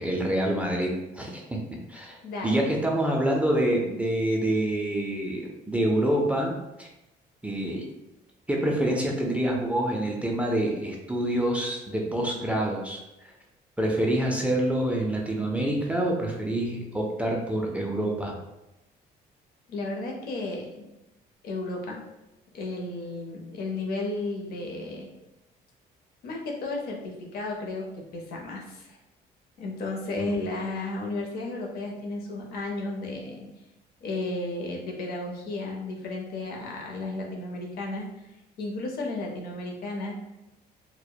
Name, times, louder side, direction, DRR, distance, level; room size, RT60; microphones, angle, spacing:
voice 1, 0.0-1.6 1.9-2.2 2.4-6.9 7.4-7.9 8.5-13.3 13.8-18.3 30.1-30.4, right 1 dB, 10° right, -1 dB, 0.3 m, -27 dB
voice 2, 2.2-2.7 19.7-20.9 21.4-22.0 22.5-25.1 26.2-29.0 29.6-33.5 34.0-38.1 38.6-40.1, left 2 dB, 65° left, 0 dB, 0.6 m, -33 dB
2.7 x 2.0 x 2.2 m, 0.94 s
cardioid pair, 110°, 17 cm